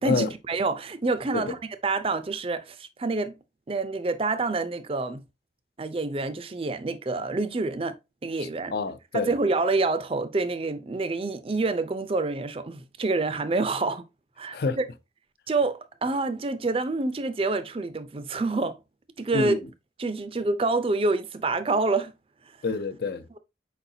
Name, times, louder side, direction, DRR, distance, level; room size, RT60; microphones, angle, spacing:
voice 1, 0.0-3.4 3.7-5.2 5.8-7.9 8.2-8.7 9.1-14.0 14.4-14.8 15.5-18.8 19.2-19.5 20.0-22.1, right 3 dB, 30° right, 0.4 m, -27 dB
voice 2, 8.7-9.3 14.5-14.8 19.3-19.6 22.6-23.2, left 4 dB, 55° left, 0.4 m, -27 dB
4.7 x 4.1 x 2.7 m
head